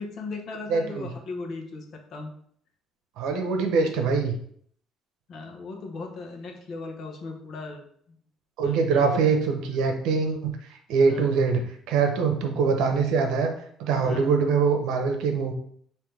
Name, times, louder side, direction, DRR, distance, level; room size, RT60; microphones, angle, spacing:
voice 1, 0.0-1.8 2.1-2.3 5.3-7.8 8.6-9.0 9.4-9.5 11.1-11.3 14.0-14.3, left 3 dB, 45° left, 3 dB, 0.9 m, -37 dB
voice 2, 0.7-1.1 3.2-4.3 8.6-10.6 10.9-13.5 13.8-15.5, right 5 dB, 75° right, 5 dB, 0.8 m, -23 dB
5.5 x 2.8 x 3.3 m, 0.62 s
cardioid pair, 160°, 0 cm